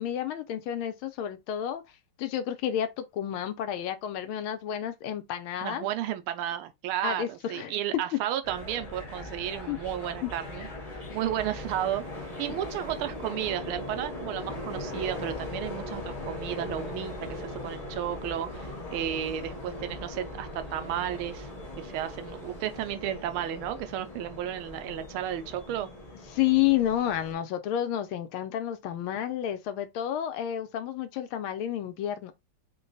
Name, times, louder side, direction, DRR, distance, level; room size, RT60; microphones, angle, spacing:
voice 1, 0.0-1.8 2.2-5.8 7.0-7.7 8.1-8.2 9.7-9.8 10.2-10.3 11.1-11.2 26.3-32.3, left 11 dB, 80° left, 1.5 m, -30 dB
voice 2, 5.6-10.7 11.1-12.0 12.4-21.5 21.8-25.9, right 11 dB, 85° right, 1.5 m, -33 dB
sound 1, 8.4-27.3, left 1 dB, 25° left, 0.8 m, -39 dB
3.9 x 2.2 x 3.9 m
omnidirectional pair, 2.3 m